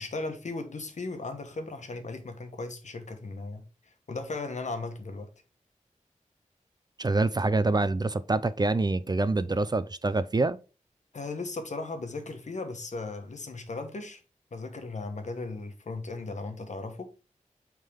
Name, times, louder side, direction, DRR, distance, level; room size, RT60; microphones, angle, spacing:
voice 1, 0.0-5.3 11.1-14.2 14.5-17.1, left 3 dB, 65° left, 1.2 m, -37 dB
voice 2, 7.0-10.6, right 2 dB, 30° right, 0.4 m, -26 dB
8.4 x 3.7 x 3.5 m
wide cardioid pair, 90°, 13 cm